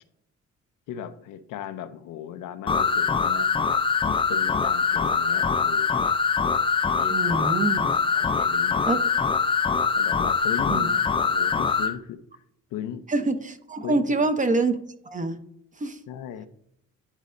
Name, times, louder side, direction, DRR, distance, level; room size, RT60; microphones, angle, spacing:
voice 1, 0.9-3.5 4.1-6.1 6.9-7.4 8.1-9.0 9.9-12.2 12.7-13.1 13.8-14.2 16.1-16.5, left 9 dB, 90° left, 10 dB, 0.6 m, -37 dB
sound 1, 2.7-11.9, left 5 dB, 20° left, 0.4 m, -23 dB
voice 2, 7.1-7.8 8.9-9.0 10.7-10.9 13.1-14.8 15.1-15.4 15.8-16.0, right 3 dB, 25° right, 9 dB, 0.7 m, -25 dB
9.9 x 4.0 x 2.5 m, 0.74 s
cardioid pair, 90°, 30 cm